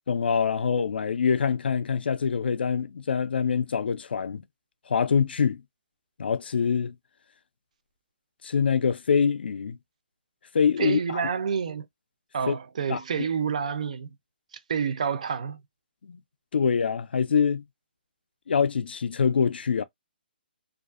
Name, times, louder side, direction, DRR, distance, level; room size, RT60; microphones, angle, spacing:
voice 1, 0.1-4.4 4.9-5.6 6.2-6.9 8.4-9.8 10.5-11.2 12.5-12.6 12.9-13.3 16.0-16.2 16.5-17.6 18.5-19.8, left 6 dB, 70° left, 0.3 m, -25 dB
voice 2, 10.8-11.9 12.3-14.1 14.7-15.6, right 6 dB, 40° right, 0.3 m, -28 dB
2.5 x 2.4 x 2.3 m
hypercardioid pair, 175°, 6 cm